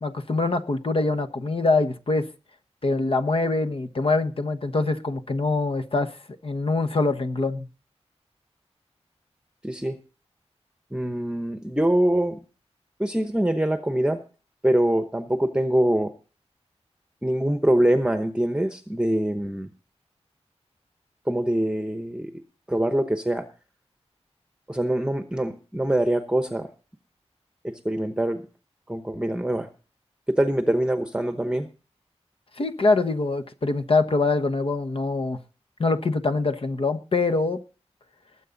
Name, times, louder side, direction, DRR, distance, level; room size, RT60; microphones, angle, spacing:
voice 1, 0.0-2.3 2.8-6.1 6.4-7.7 32.6-35.4 35.8-37.6, left 3 dB, 55° left, 10 dB, 1.2 m, -24 dB
voice 2, 9.6-10.0 10.9-12.4 13.0-14.2 14.6-16.1 17.2-19.7 21.3-22.3 22.7-23.5 24.7-26.7 27.6-28.5 28.9-29.7 30.3-31.7, right 1 dB, 10° right, 7 dB, 1.0 m, -24 dB
20.0 x 8.3 x 4.0 m, 0.36 s
wide cardioid pair, 90°, 11 cm